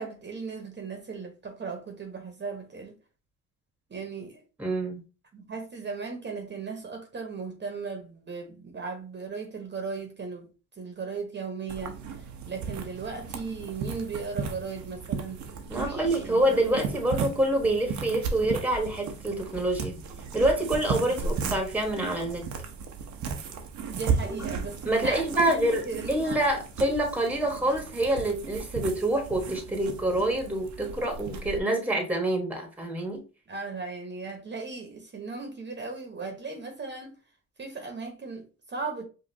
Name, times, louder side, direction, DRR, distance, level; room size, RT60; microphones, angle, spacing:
voice 1, 0.0-3.0 3.9-4.4 5.3-15.4 15.7-16.8 21.1-21.3 23.8-26.4 33.5-37.2 37.6-39.1, right 4 dB, 35° right, 1.0 m, -37 dB
voice 2, 4.6-5.0 15.7-20.0 20.3-22.5 24.2-24.6 24.8-33.2, right 1 dB, 5° right, 1.2 m, -27 dB
sound 1, 11.7-31.6, right 5 dB, 70° right, 0.8 m, -35 dB
5.1 x 2.5 x 2.7 m
cardioid pair, 90°, 30 cm